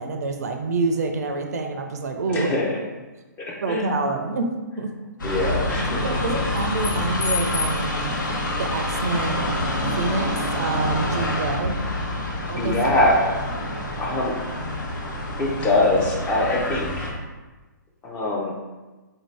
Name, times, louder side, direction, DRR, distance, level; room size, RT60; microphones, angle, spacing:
voice 1, 0.0-2.5 3.6-4.9 5.8-8.2 8.6-9.5 10.0-11.8 12.5-13.0, right 3 dB, 55° right, 5 dB, 0.4 m, -27 dB
voice 2, 2.3-2.8 3.4-3.9 5.2-6.4 12.3-13.2 14.0-14.3 15.4-17.1 18.0-18.5, left 2 dB, 15° left, -3 dB, 0.4 m, -23 dB
sound 1, 5.2-17.1, left 1 dB, 80° left, 0.8 m, -27 dB
3.9 x 2.6 x 3.2 m, 1.2 s
hypercardioid pair, 150°, 10 cm